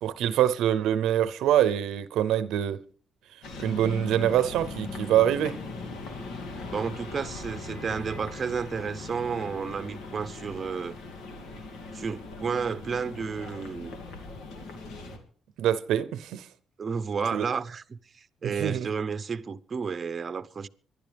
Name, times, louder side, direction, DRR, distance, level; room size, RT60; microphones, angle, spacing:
voice 1, 0.0-2.8 3.6-5.6 15.6-16.5 17.3-17.4 18.4-18.9, right 11 dB, 85° right, 0.6 m, -25 dB
sound 1, 3.4-15.2, left 3 dB, 85° left, 2.5 m, -40 dB
voice 2, 6.7-11.0 11.9-14.2 16.8-20.7, right 5 dB, 40° right, 0.7 m, -32 dB
25.5 x 11.5 x 3.4 m
cardioid pair, 90°, 0 cm